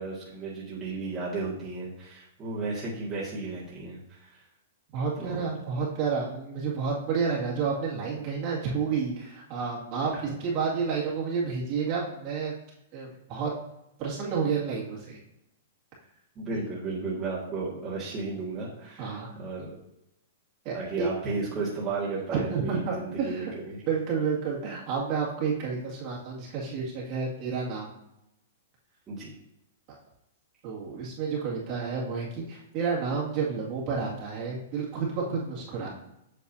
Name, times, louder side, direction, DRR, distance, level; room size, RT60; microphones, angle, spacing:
voice 1, 0.0-4.4 5.2-5.4 10.1-10.2 16.4-19.7 20.7-23.8 29.1-29.3, right 3 dB, 20° right, -8 dB, 2.0 m, -34 dB
voice 2, 4.9-12.5 12.9-13.5 14.0-15.2 19.0-19.3 20.6-21.1 22.3-23.5 23.9-27.9 30.6-35.9, right 5 dB, 35° right, -4 dB, 2.2 m, -30 dB
8.5 x 6.5 x 2.8 m, 0.84 s
hypercardioid pair, 160°, 0 cm